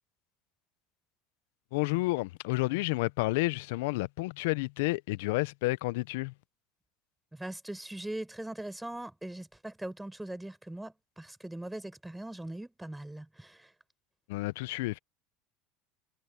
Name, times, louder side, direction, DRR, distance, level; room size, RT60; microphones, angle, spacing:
voice 1, 1.7-6.3 14.3-15.0, left 22 dB, 75° left, 0.9 m, -30 dB
voice 2, 7.3-13.7, right 1 dB, 5° right, 4.8 m, -41 dB
hypercardioid pair, 85°, 0 cm